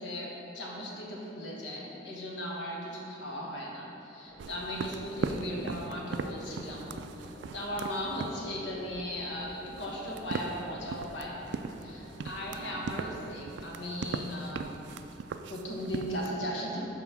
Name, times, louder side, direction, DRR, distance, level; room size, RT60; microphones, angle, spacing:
voice 1, 0.0-11.4 11.8-14.8 15.5-16.8, equal, 75° left, -2 dB, 1.2 m, -37 dB
sound 1, 4.2-13.1, equal, 40° left, 1.5 m, -51 dB
sound 2, 4.4-16.3, right 4 dB, 70° right, 0.3 m, -39 dB
5.7 x 4.2 x 5.9 m, 2.9 s
head